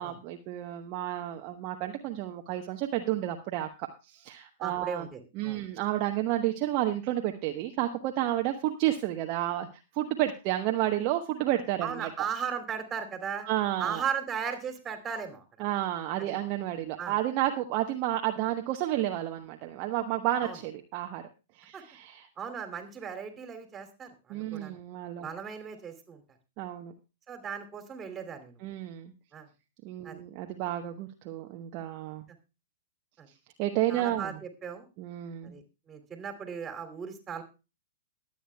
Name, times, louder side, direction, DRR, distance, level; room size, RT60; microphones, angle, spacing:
voice 1, 0.0-5.1 5.4-9.7 9.9-12.3 13.4-14.0 15.6-21.2 21.6-22.3 24.3-25.3 26.6-26.9 28.6-29.1 29.8-32.2 33.6-34.4 35.0-35.6, right 13 dB, 40° right, 4 dB, 1.0 m, -31 dB
voice 2, 4.6-5.6 11.8-13.5 13.8-15.4 16.2-16.3 17.0-17.1 20.4-20.6 21.7-21.8 22.4-24.8 25.2-26.2 27.3-28.6 29.3-29.5 30.0-30.2 33.2-33.3 33.9-34.9 35.4-37.4, right 7 dB, 20° right, 5 dB, 2.7 m, -37 dB
22.5 x 8.9 x 2.2 m, 0.30 s
figure-of-eight pair, 110°, 0 cm